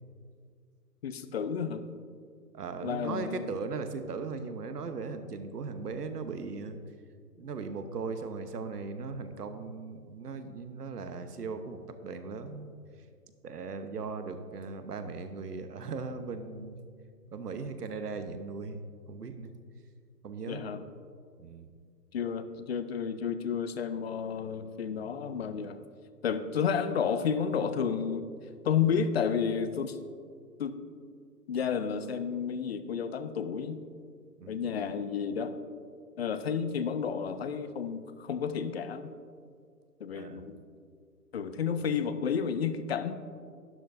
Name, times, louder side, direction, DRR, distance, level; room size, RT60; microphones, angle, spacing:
voice 1, 1.0-1.8 2.8-3.5 20.5-20.8 22.1-25.8 26.2-28.3 28.6-30.0 30.6-30.8 31.5-33.8 34.5-35.6 36.2-39.1 40.0-40.6 41.3-43.1, left 7 dB, 40° left, 11 dB, 0.6 m, -31 dB
voice 2, 2.5-6.8 7.4-12.7 13.4-16.8 17.3-18.8 19.1-19.5 20.2-20.8 21.4-21.7 34.4-34.7 40.1-40.5, right 4 dB, 75° right, 9 dB, 1.1 m, -38 dB
12.0 x 11.0 x 2.6 m, 2.1 s
hypercardioid pair, 145°, 48 cm